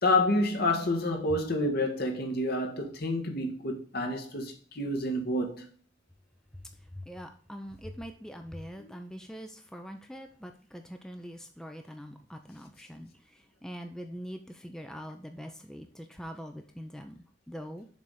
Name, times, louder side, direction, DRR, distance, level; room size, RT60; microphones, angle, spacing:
voice 1, 0.0-5.7 8.8-8.9, left 1 dB, 55° left, 1.7 m, -29 dB
voice 2, 6.9-17.9, equal, 5° left, 0.6 m, -43 dB
7.0 x 4.1 x 6.5 m
head